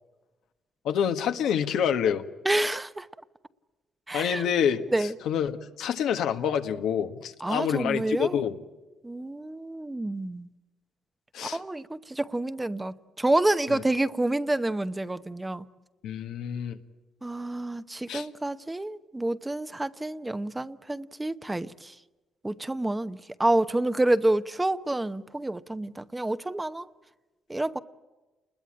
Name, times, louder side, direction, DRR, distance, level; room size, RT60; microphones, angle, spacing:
voice 1, 0.8-2.2 4.1-4.8 5.3-8.5 11.3-11.6 13.7-13.8 16.0-16.8 18.1-18.2, left 8 dB, 80° left, 1.5 m, -27 dB
voice 2, 2.4-3.1 4.1-4.4 4.9-5.1 7.4-8.4 9.0-10.5 11.4-15.7 17.2-22.0 22.4-26.9 27.5-27.8, right 2 dB, 15° right, 0.9 m, -28 dB
29.0 x 21.0 x 8.7 m
cardioid pair, 90°, 0 cm